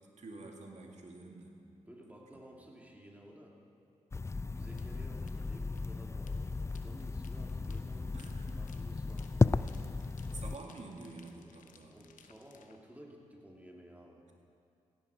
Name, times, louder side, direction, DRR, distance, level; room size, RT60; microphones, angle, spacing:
voice 1, 0.2-1.6 4.5-5.0 8.1-8.6 10.0-12.0, right 3 dB, 60° right, 1 dB, 2.2 m, -49 dB
voice 2, 1.9-3.6 4.5-10.0 11.9-14.2, equal, 10° right, -1 dB, 2.9 m, -54 dB
sound 1, 4.1-10.6, left 3 dB, 20° left, 0.3 m, -34 dB
sound 2, 4.8-12.8, left 7 dB, 80° left, 0.9 m, -62 dB
16.0 x 12.5 x 4.9 m, 2.5 s
cardioid pair, 50°, 13 cm